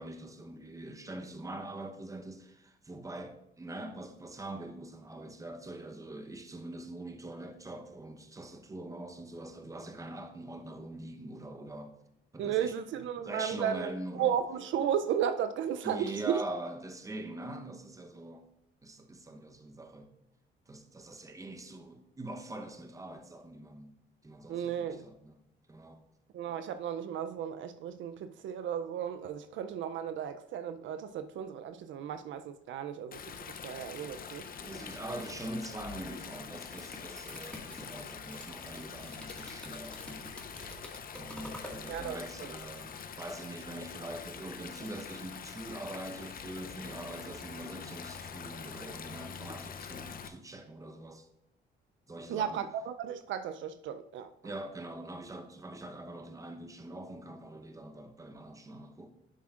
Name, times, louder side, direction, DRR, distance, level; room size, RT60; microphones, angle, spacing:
voice 1, 0.0-11.9 12.3-12.7 13.2-14.4 15.8-18.5 18.8-20.1 20.7-24.0 24.2-25.4 25.7-26.0 34.3-40.4 41.1-51.3 52.1-52.6 54.4-59.1, right 1 dB, 15° right, 0.8 m, -43 dB
voice 2, 12.4-16.4 24.5-25.0 26.3-33.2 33.5-34.5 41.9-42.5 52.3-54.3, right 9 dB, 75° right, 0.4 m, -34 dB
Stream, 33.1-50.3, left 7 dB, 45° left, 0.6 m, -45 dB
sound 1, 36.4-41.8, left 1 dB, 5° left, 1.8 m, -47 dB
10.5 x 7.2 x 2.4 m
cardioid pair, 90°, 20 cm